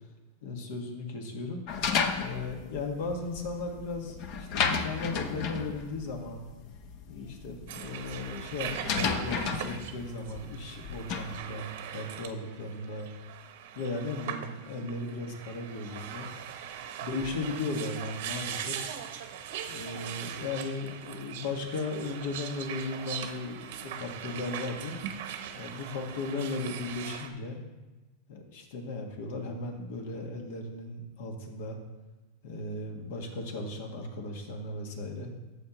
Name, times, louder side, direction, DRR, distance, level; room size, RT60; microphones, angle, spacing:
voice 1, 0.4-1.6 2.2-6.4 7.1-13.1 13.7-16.3 17.0-18.8 19.7-25.0 25.5-27.6 28.3-31.8 32.4-35.3, left 3 dB, 70° left, 3 dB, 1.7 m, -36 dB
sound 1, 1.7-11.4, left 6 dB, 50° left, 0.9 m, -33 dB
sound 2, 7.7-27.3, right 9 dB, 70° right, 0.8 m, -40 dB
12.0 x 7.4 x 3.1 m, 1.1 s
supercardioid pair, 130°, 0 cm